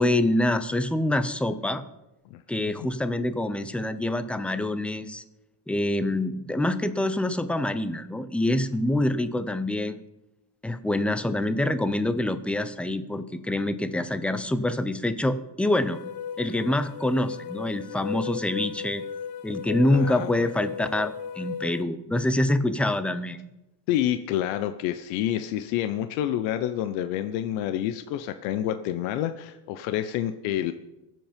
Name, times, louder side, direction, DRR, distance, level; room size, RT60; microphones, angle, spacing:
voice 1, 0.0-1.8 2.5-5.2 5.7-10.0 10.6-16.0 16.4-19.0 19.4-23.4, left 1 dB, 5° left, 11 dB, 0.5 m, -26 dB
sound 1, 15.8-21.8, left 7 dB, 40° left, 0.9 m, -36 dB
voice 2, 19.9-20.5 23.9-30.7, left 11 dB, 75° left, 10 dB, 0.9 m, -28 dB
22.0 x 7.8 x 5.2 m, 0.97 s
cardioid pair, 150°, 46 cm